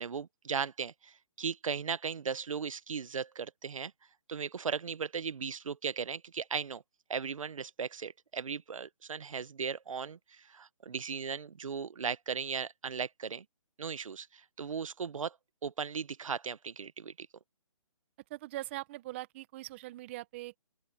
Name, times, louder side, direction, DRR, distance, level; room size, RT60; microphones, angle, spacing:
voice 1, 0.0-3.9 4.3-6.8 7.1-10.2 10.5-13.4 13.8-14.3 14.6-15.3 15.6-17.3, right 6 dB, 70° right, 1.0 m, -37 dB
voice 2, 18.3-20.6, right 17 dB, 20° right, 1.1 m, -41 dB
open air
hypercardioid pair, 160°, 18 cm